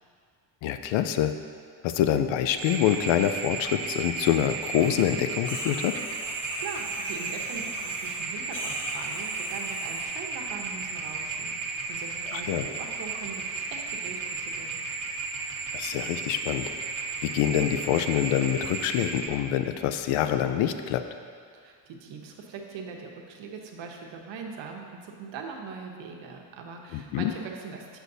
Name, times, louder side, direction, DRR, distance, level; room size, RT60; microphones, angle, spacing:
voice 1, 0.6-1.3 1.8-5.9 12.3-12.7 15.7-16.7 17.2-21.0 26.9-27.3, left 10 dB, 85° left, 9 dB, 0.5 m, -26 dB
sound 1, 2.6-19.3, right 4 dB, 45° right, 1.1 m, -34 dB
sound 2, 4.8-5.0 5.3-8.2 8.5-10.0, equal, 25° left, 1.6 m, -40 dB
voice 2, 6.5-14.8 21.5-28.0, right 5 dB, 75° right, 1 dB, 1.0 m, -41 dB
8.1 x 6.3 x 2.7 m, 2.1 s
cardioid pair, 120°, 45 cm